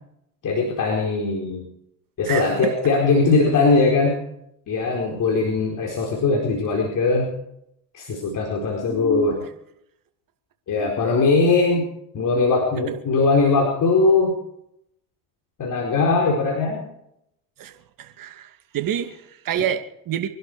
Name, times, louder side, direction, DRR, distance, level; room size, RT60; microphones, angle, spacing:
voice 1, 0.4-1.6 2.2-4.2 4.7-7.3 7.9-9.4 10.7-11.9 12.1-14.4 15.6-16.9 19.6-19.7, left 3 dB, 40° left, -1 dB, 4.5 m, -20 dB
voice 2, 2.3-2.9 12.8-12.9 17.6-20.3, right 10 dB, 45° right, 8 dB, 2.3 m, -29 dB
24.5 x 12.0 x 4.9 m, 0.77 s
hypercardioid pair, 75°, 46 cm